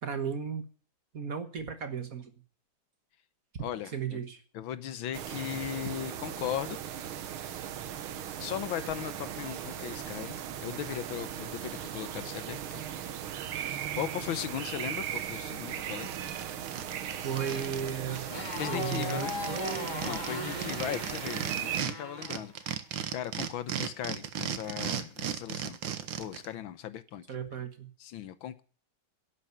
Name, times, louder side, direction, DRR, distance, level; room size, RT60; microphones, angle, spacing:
voice 1, 0.0-0.7 1.1-2.3 3.9-4.4 17.2-18.3 18.7-20.8 27.3-27.9, right 7 dB, 45° right, 8 dB, 1.6 m, -35 dB
voice 2, 3.6-4.2 4.5-6.8 8.4-12.8 13.9-16.1 18.5-19.4 20.0-22.5 23.1-25.8 26.2-27.2 28.0-28.6, left 10 dB, 75° left, 14 dB, 1.6 m, -37 dB
sound 1, 5.1-21.8, right 9 dB, 85° right, 1.9 m, -38 dB
sound 2, 15.6-15.7 16.0-17.9 18.2-18.3 18.5-21.9 22.2-26.5, right 9 dB, 70° right, 1.8 m, -35 dB
Motorcycle, 16.4-22.5, left 4 dB, 20° left, 2.0 m, -40 dB
11.5 x 8.6 x 9.4 m, 0.41 s
omnidirectional pair, 2.3 m